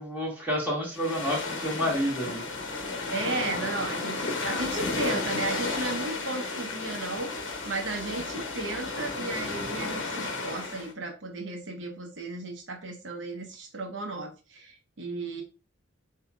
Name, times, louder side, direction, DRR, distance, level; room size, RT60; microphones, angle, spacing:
voice 1, 0.0-2.4, equal, 10° right, -5 dB, 1.9 m, -29 dB
sound 1, 0.9-10.9, left 3 dB, 90° left, 1.1 m, -33 dB
voice 2, 3.1-15.4, right 3 dB, 70° right, 3 dB, 0.8 m, -35 dB
7.3 x 2.8 x 2.3 m, 0.34 s
head